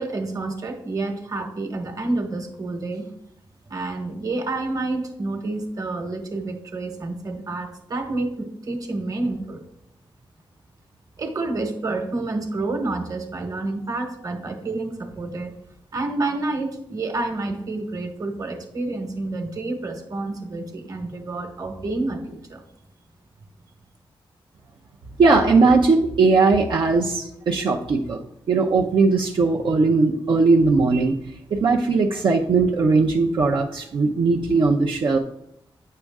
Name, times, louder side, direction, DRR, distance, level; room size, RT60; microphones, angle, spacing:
voice 1, 0.0-3.0 3.7-9.6 11.2-15.6 15.9-22.6, right 2 dB, 40° right, 5 dB, 1.3 m, -29 dB
voice 2, 25.2-28.2 28.5-31.2 31.5-35.2, right 3 dB, 65° right, -1 dB, 0.7 m, -19 dB
9.2 x 6.7 x 3.6 m, 0.76 s
wide cardioid pair, 120°, 9 cm